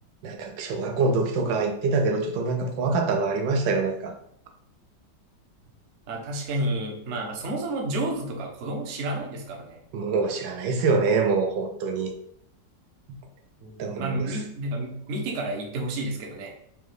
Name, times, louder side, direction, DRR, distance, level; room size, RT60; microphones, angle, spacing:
voice 1, 0.2-4.1 9.9-12.1 13.1-13.2 13.8-14.4, right 4 dB, 85° right, 4 dB, 1.4 m, -25 dB
voice 2, 6.1-9.8 13.6-16.5, right 1 dB, 55° right, 1 dB, 0.8 m, -30 dB
5.1 x 2.3 x 3.2 m, 0.68 s
omnidirectional pair, 2.0 m